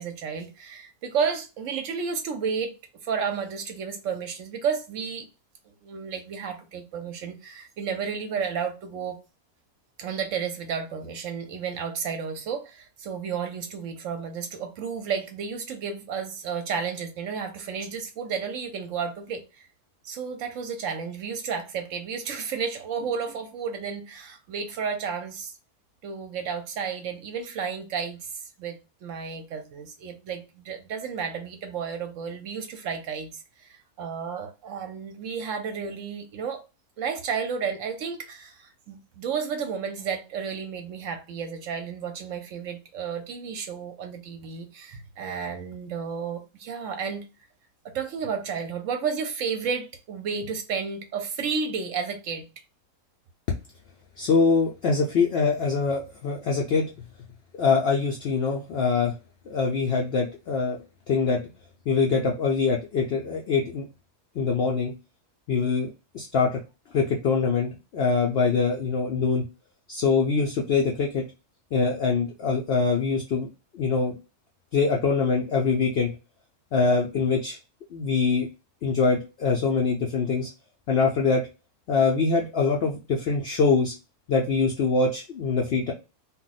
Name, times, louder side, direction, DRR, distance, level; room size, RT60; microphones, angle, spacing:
voice 1, 0.0-2.7 3.0-5.3 5.7-9.2 10.0-19.6 20.0-25.5 26.0-28.3 28.6-36.6 37.0-47.3 47.8-52.5, right 6 dB, 70° right, 0.9 m, -32 dB
voice 2, 54.2-56.9 57.6-59.2 59.5-60.8 61.1-61.4 61.9-63.8 64.4-64.9 65.5-66.6 66.9-69.4 69.9-71.2 71.7-73.5 73.7-74.1 74.7-76.2 76.7-77.6 77.9-78.5 78.8-80.5 80.9-81.4 81.9-83.9 84.3-85.9, left 4 dB, 70° left, 0.5 m, -24 dB
2.3 x 2.1 x 3.9 m
omnidirectional pair, 1.5 m